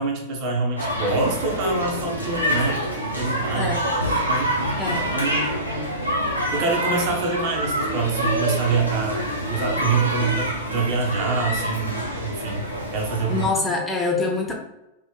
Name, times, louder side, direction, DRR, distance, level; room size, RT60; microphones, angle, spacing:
voice 1, 0.0-2.8 3.2-3.8 4.3-5.9 6.5-12.7 12.9-13.5, right 4 dB, 45° right, 0 dB, 0.9 m, -26 dB
sound 1, 0.8-13.5, equal, 90° right, 0.7 m, -26 dB
voice 2, 3.5-3.8 4.8-5.1 13.3-14.5, left 3 dB, 5° left, -2 dB, 0.8 m, -25 dB
3.1 x 2.5 x 3.6 m, 0.92 s
figure-of-eight pair, 90°, 0 cm